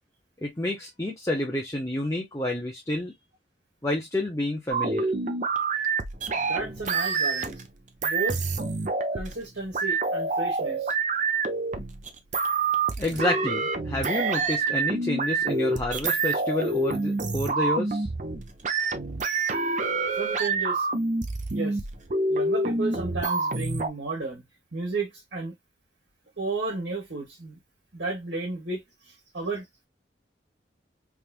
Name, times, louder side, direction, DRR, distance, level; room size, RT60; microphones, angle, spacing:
voice 1, 0.4-3.1 3.8-5.1 13.0-18.1, left 1 dB, 15° left, 0.9 m, -29 dB
sound 1, 4.7-7.7 8.0-9.4 9.7-23.9, right 3 dB, 40° right, 0.6 m, -27 dB
voice 2, 6.3-7.6 8.0-8.4 9.1-10.9 20.2-20.9 21.5-21.8 22.3-24.4 24.7-25.6 26.4-27.6 27.9-29.8, right 3 dB, 65° right, 1.8 m, -33 dB
3.6 x 3.2 x 2.4 m
head